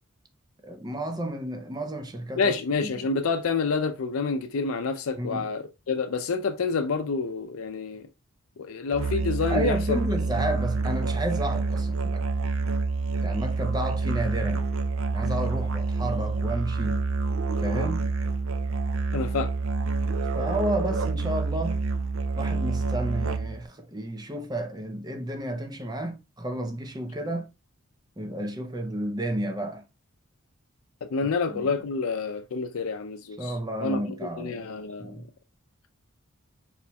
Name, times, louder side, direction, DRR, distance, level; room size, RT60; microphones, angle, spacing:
voice 1, 0.6-2.5 5.2-5.5 9.5-12.3 13.2-14.6 15.1-17.0 17.6-18.1 20.3-21.8 22.4-27.5 28.2-29.8 31.2-31.7 33.4-34.5 35.0-35.3, right 1 dB, 20° right, 0.6 m, -31 dB
voice 2, 2.4-8.1 8.6-10.0 19.1-19.5 31.0-35.2, left 4 dB, 80° left, 0.5 m, -28 dB
Musical instrument, 8.9-23.7, right 4 dB, 70° right, 0.5 m, -27 dB
4.3 x 4.1 x 2.3 m
head